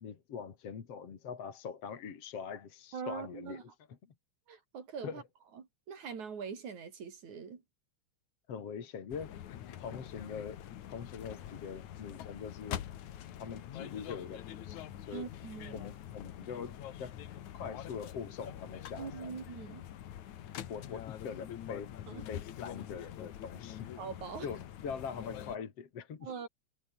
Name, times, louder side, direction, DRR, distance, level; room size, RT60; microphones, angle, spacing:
voice 1, 0.0-3.6 5.0-5.2 8.5-9.4 9.8-10.6 10.9-12.9 13.4-15.3 15.7-17.2 17.5-19.3 20.7-21.9 22.3-23.9 24.4-26.3, left 6 dB, 55° left, 3.4 m, -43 dB
voice 2, 2.9-3.6 4.5-5.2 5.5-7.6 15.1-15.9 19.0-19.8 22.1-22.3 24.0-24.5 26.2-26.5, right 6 dB, 80° right, 4.8 m, -43 dB
sound 1, 9.1-25.6, left 11 dB, 80° left, 2.9 m, -45 dB
omnidirectional pair, 3.3 m